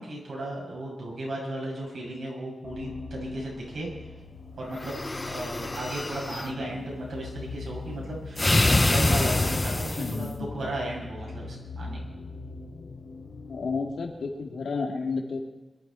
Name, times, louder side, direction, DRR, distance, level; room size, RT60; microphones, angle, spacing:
voice 1, 0.0-3.9 4.6-5.0 5.2-12.0, right 1 dB, 75° right, -2 dB, 6.8 m, -35 dB
sound 1, 2.6-14.5, left 4 dB, 60° left, 2.9 m, -41 dB
sound 2, 4.8-6.5 8.4-10.3, left 2 dB, 20° left, 0.4 m, -25 dB
voice 2, 10.0-10.5 13.5-15.4, left 4 dB, 85° left, 1 dB, 2.4 m, -31 dB
22.0 x 12.0 x 4.5 m, 1.2 s
wide cardioid pair, 160°, 0 cm